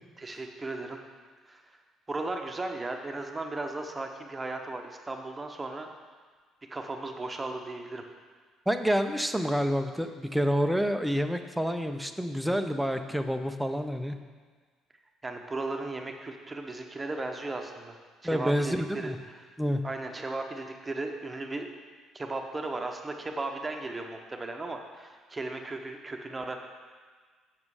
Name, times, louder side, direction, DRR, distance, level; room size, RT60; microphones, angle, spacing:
voice 1, 0.2-1.0 1.5-1.8 2.1-5.9 6.7-8.0 15.2-18.0 18.2-19.5 19.8-21.7 22.1-26.6, right 2 dB, 25° right, 4 dB, 1.0 m, -36 dB
voice 2, 8.7-14.2 18.2-19.2 19.6-19.8, equal, 5° right, 7 dB, 0.7 m, -28 dB
7.5 x 7.2 x 4.8 m, 1.5 s
hypercardioid pair, 50°, 0 cm